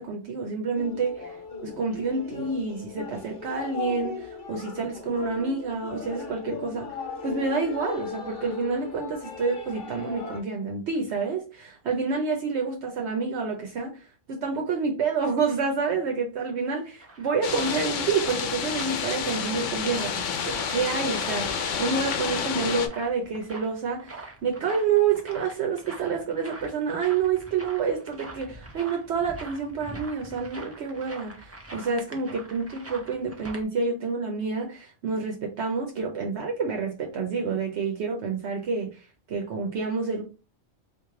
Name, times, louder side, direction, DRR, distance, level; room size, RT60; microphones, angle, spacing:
voice 1, 0.0-1.4 1.6-6.9 7.2-39.0 39.3-40.2, right 5 dB, 65° right, 0.9 m, -28 dB
sound 1, 0.7-10.4, left 4 dB, 50° left, 1.2 m, -38 dB
sound 2, 16.6-33.6, right 2 dB, 25° right, 0.3 m, -44 dB
sound 3, 17.4-22.9, left 7 dB, 85° left, 0.9 m, -29 dB
3.1 x 2.5 x 3.6 m
omnidirectional pair, 1.3 m